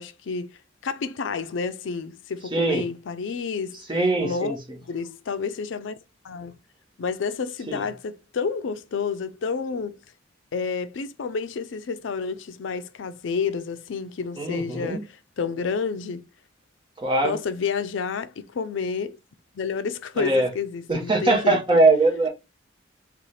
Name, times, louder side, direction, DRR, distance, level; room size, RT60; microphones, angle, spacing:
voice 1, 0.0-3.8 4.2-5.9 6.2-6.5 7.0-10.0 10.5-16.3 17.2-19.2 19.6-21.8, left 5 dB, 70° left, 0.4 m, -30 dB
voice 2, 2.5-2.8 3.9-4.6 7.7-7.9 14.4-15.0 17.0-17.4 20.2-20.5 20.9-22.3, right 2 dB, 25° right, 1.0 m, -21 dB
4.1 x 2.4 x 3.2 m
head